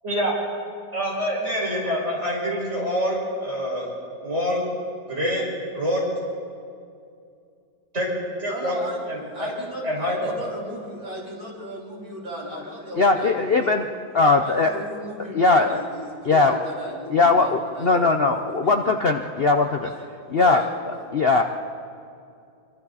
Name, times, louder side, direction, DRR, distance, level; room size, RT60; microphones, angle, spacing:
voice 1, 0.9-3.9 4.2-4.6 5.1-5.4 5.7-6.0 7.9-8.1 8.4-8.7 9.1-9.5 9.8-10.3, equal, 35° right, -4 dB, 5.9 m, -26 dB
voice 2, 8.5-9.0 9.3-13.8 14.4-18.9 19.8-19.9 20.2-21.0, right 1 dB, 85° right, -5 dB, 4.9 m, -36 dB
voice 3, 13.0-13.9 14.1-14.8 15.3-15.8 16.2-16.6 17.1-19.9 20.3-21.4, left 3 dB, 65° left, 4 dB, 0.5 m, -20 dB
26.0 x 24.5 x 4.2 m, 2.4 s
omnidirectional pair, 2.1 m